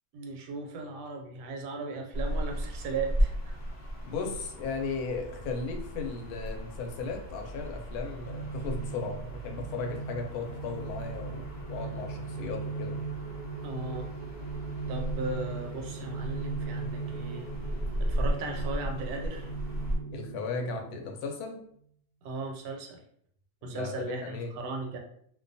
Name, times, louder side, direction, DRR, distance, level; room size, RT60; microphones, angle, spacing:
voice 1, 0.1-3.5 13.6-14.1 14.9-17.5 18.0-19.5 22.2-23.0 23.6-25.0, right 3 dB, 80° right, 2 dB, 1.1 m, -37 dB
sound 1, 2.1-20.0, equal, 40° left, 0.8 m, -36 dB
voice 2, 4.0-13.0 20.1-21.6 23.6-24.5, left 4 dB, 85° left, 3 dB, 1.1 m, -36 dB
sound 2, 8.2-21.2, right 4 dB, 65° left, 0.4 m, -39 dB
sound 3, 10.4-21.1, right 4 dB, 60° right, 0.4 m, -48 dB
2.5 x 2.2 x 2.5 m, 0.65 s
omnidirectional pair, 1.6 m